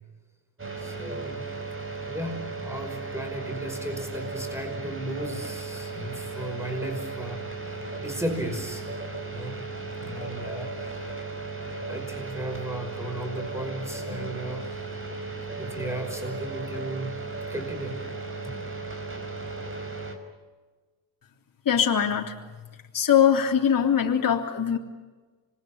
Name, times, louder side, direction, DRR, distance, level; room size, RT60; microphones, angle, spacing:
sound 1, 0.6-20.2, right 3 dB, 25° right, 5.1 m, -36 dB
voice 1, 0.8-1.5 2.1-8.9 9.3-9.7 10.0-10.9 11.9-14.8 15.6-17.1 17.5-18.0 18.4-18.5, right 1 dB, 5° right, 5 dB, 5.6 m, -35 dB
voice 2, 21.7-22.4 22.9-24.8, left 8 dB, 45° left, 1 dB, 3.4 m, -22 dB
26.0 x 22.0 x 9.0 m, 1.3 s
supercardioid pair, 70°, 48 cm